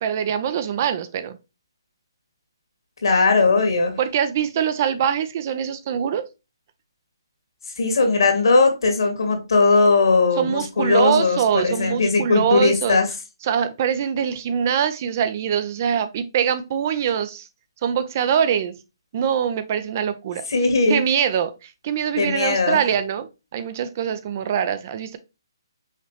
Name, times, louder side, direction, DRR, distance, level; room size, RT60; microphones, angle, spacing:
voice 1, 0.0-1.4 4.0-6.3 10.4-13.0 13.4-17.5 17.8-18.8 19.1-20.4 20.9-23.3 23.5-25.2, right 8 dB, 35° right, 11 dB, 0.4 m, -23 dB
voice 2, 3.0-4.0 7.8-13.1 20.5-21.0 22.2-22.8, left 3 dB, 70° left, 4 dB, 1.9 m, -19 dB
5.6 x 2.9 x 3.2 m, 0.27 s
hypercardioid pair, 160°, 2 cm